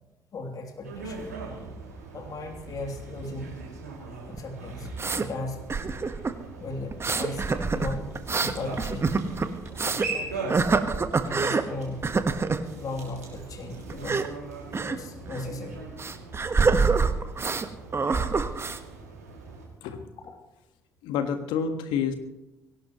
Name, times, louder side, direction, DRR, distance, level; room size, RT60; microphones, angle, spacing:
voice 1, 0.3-1.2 2.1-3.7 4.2-5.6 6.6-9.2 9.7-12.1 12.8-14.3 14.9-15.8 20.2-20.4, left 2 dB, 50° left, 3 dB, 3.1 m, -37 dB
sound 1, 0.8-19.7, right 3 dB, 90° right, 2.8 m, -40 dB
sound 2, 4.3-5.3 5.7-6.4 6.9-10.1 10.5-11.7 12.0-12.6 13.9-14.3 14.7-15.0 15.3-15.4 16.0-17.7 17.9-18.8, right 4 dB, 30° right, 1.4 m, -25 dB
voice 2, 21.0-22.1, left 7 dB, 70° left, 8 dB, 1.6 m, -28 dB
22.0 x 17.5 x 3.1 m, 0.96 s
hypercardioid pair, 45°, 8 cm